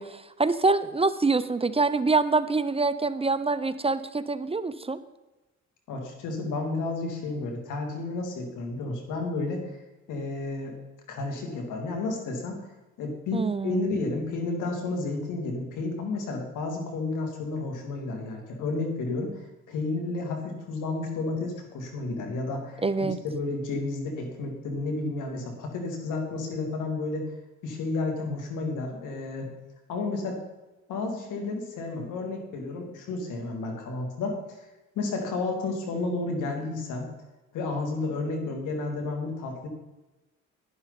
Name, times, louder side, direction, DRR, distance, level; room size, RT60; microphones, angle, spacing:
voice 1, 0.0-5.0 13.3-13.9 22.8-23.2, right 3 dB, 20° right, 12 dB, 0.6 m, -25 dB
voice 2, 5.9-9.6 10.1-10.7 11.1-12.7 13.0-27.3 27.6-29.5 29.9-30.4 30.9-34.4 34.9-37.1 37.5-39.7, left 3 dB, 85° left, 3 dB, 2.8 m, -31 dB
11.0 x 11.0 x 4.1 m, 1.1 s
cardioid pair, 90°, 30 cm